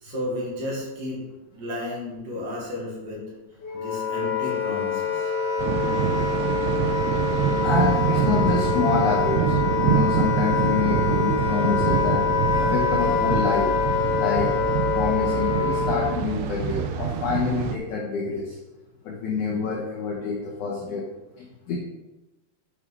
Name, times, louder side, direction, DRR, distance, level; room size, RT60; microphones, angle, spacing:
voice 1, 0.0-1.2 1.5-3.2 3.7-5.3, left 1 dB, 55° right, -4 dB, 3.2 m, -33 dB
Wind instrument woodwind instrument, 3.6-16.3, left 6 dB, 60° left, 1.6 m, -25 dB
Thunder, 5.6-17.8, right 9 dB, 90° right, 2.3 m, -26 dB
voice 2, 7.6-12.2 12.6-13.7 14.2-14.5 14.9-18.6 19.0-21.1 21.4-21.8, left 5 dB, 80° left, -2 dB, 1.7 m, -27 dB
9.6 x 5.1 x 4.7 m, 1.0 s
omnidirectional pair, 5.3 m